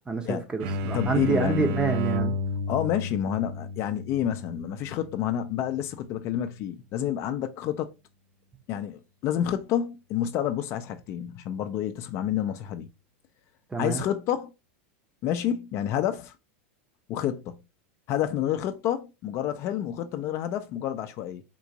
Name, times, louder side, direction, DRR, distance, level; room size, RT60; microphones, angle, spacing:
voice 1, 0.0-2.3 13.7-14.0, right 4 dB, 15° right, 0.6 m, -28 dB
sound 1, 0.6-6.1, left 1 dB, 60° right, 0.6 m, -32 dB
voice 2, 0.9-1.8 2.7-7.9 8.7-12.9 13.8-14.5 15.2-16.3 17.1-17.6 18.1-21.4, left 10 dB, 45° left, 0.4 m, -29 dB
3.7 x 2.5 x 2.8 m
supercardioid pair, 125°, 7 cm